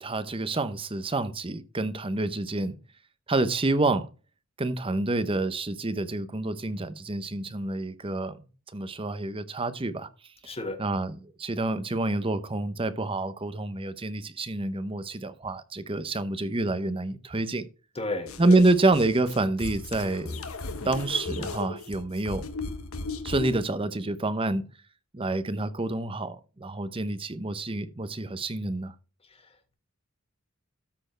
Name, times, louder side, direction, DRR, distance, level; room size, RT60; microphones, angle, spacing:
voice 1, 0.0-2.8 3.3-4.1 4.6-8.4 8.7-10.1 10.8-17.7 18.4-20.4 20.8-22.5 23.2-24.6 25.1-28.9, right 2 dB, 25° right, 0.7 m, -28 dB
voice 2, 10.4-10.8 17.9-18.6 29.2-29.7, left 2 dB, 25° left, 1.5 m, -34 dB
sound 1, 18.3-23.6, left 3 dB, 75° left, 1.2 m, -36 dB
13.0 x 4.4 x 4.4 m
head